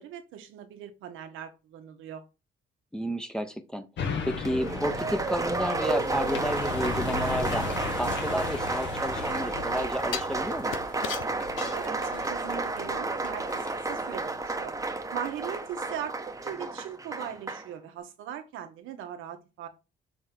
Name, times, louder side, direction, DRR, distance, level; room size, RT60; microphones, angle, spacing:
voice 1, 0.0-2.2 11.7-14.7 15.1-16.1 16.4-19.7, right 9 dB, 90° right, 1.3 m, -39 dB
voice 2, 2.9-3.9 4.2-7.7 7.9-10.8, equal, 5° left, 0.9 m, -31 dB
sound 1, 4.0-15.4 15.9-16.0, left 5 dB, 65° left, 1.4 m, -37 dB
Applause, 4.4-17.7, right 3 dB, 15° right, 1.1 m, -32 dB
sound 2, 8.1-9.3 10.1-12.5 12.9-13.0, left 9 dB, 90° left, 0.7 m, -39 dB
6.5 x 3.7 x 4.5 m
cardioid pair, 90°, 20 cm